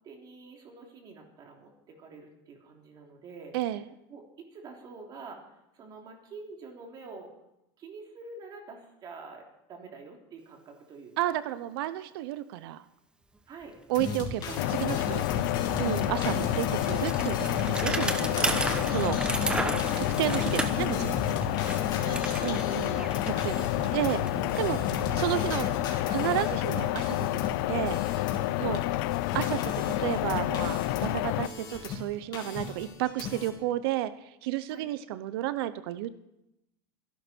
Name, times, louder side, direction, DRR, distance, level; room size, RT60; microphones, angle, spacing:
voice 1, 0.0-3.6 4.1-7.3 7.8-11.4 13.5-13.7 15.3-15.5 16.4-16.6 22.0-24.1 25.1-25.4 28.6-28.8 34.7-34.9, right 4 dB, 30° right, 1 dB, 3.5 m, -47 dB
voice 2, 3.5-3.8 11.2-12.8 13.9-15.3 15.8-18.4 18.9-19.2 20.0-21.2 22.4-22.9 23.4-23.6 23.9-24.2 24.6-25.7 26.1-27.4 27.7-28.0 28.6-28.8 29.3-34.1 34.4-36.1, right 14 dB, 70° right, 14 dB, 0.8 m, -32 dB
Bicycle, 13.6-13.7 14.0-26.9, right 2 dB, 5° right, 1.1 m, -36 dB
sound 1, 13.9-28.8 29.0-32.1 32.3-33.5, left 5 dB, 35° left, 2.9 m, -36 dB
sound 2, 14.6-31.5, left 16 dB, 65° left, 0.7 m, -29 dB
25.5 x 11.5 x 4.5 m, 0.85 s
supercardioid pair, 150°, 13 cm